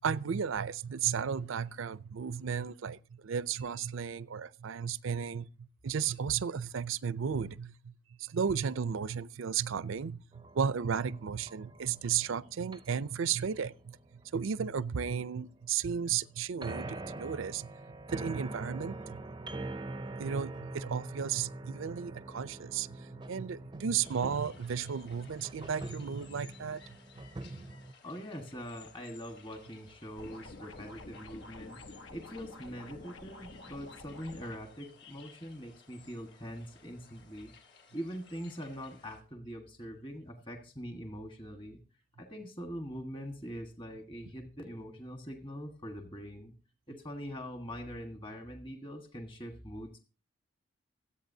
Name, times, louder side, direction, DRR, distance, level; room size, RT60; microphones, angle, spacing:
voice 1, 0.0-5.5 5.8-7.9 8.2-14.0 14.3-17.7 18.1-19.2 20.2-23.0 23.3-26.8, right 7 dB, 75° right, 0.5 m, -34 dB
sound 1, 10.3-27.9, right 2 dB, 20° right, 0.5 m, -44 dB
sound 2, 24.0-39.2, left 6 dB, 55° left, 2.6 m, -59 dB
voice 2, 28.0-37.5 37.9-41.8 42.2-46.5 46.9-50.0, equal, 25° left, 1.4 m, -43 dB
sound 3, 30.2-34.6, left 2 dB, 80° left, 1.3 m, -49 dB
25.5 x 8.5 x 2.7 m
head